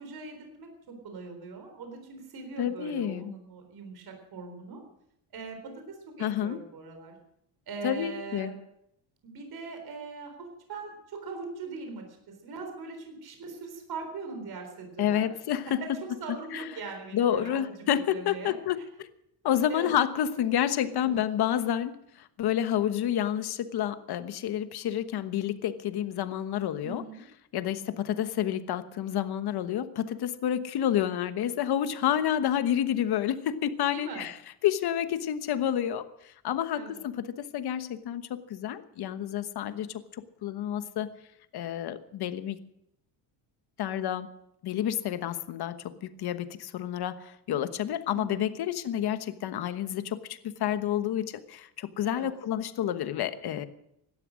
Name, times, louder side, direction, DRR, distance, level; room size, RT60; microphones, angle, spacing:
voice 1, 0.0-4.8 5.3-7.1 7.7-8.5 9.2-12.0 12.4-15.3 15.8-15.9 16.2-18.6 19.7-19.9 20.8-21.1 26.8-27.2 33.9-34.3 36.7-37.0 48.1-48.5 52.0-52.3, right 4 dB, 55° right, 4 dB, 3.9 m, -41 dB
voice 2, 2.6-3.3 6.2-6.6 7.8-8.5 15.0-15.8 16.3-16.6 17.1-19.1 19.4-27.0 27.5-34.3 34.6-40.0 40.4-41.1 41.5-42.6 43.8-44.3 44.6-53.7, left 10 dB, 55° left, 11 dB, 1.2 m, -29 dB
17.0 x 12.0 x 6.3 m, 0.76 s
cardioid pair, 130°, 45 cm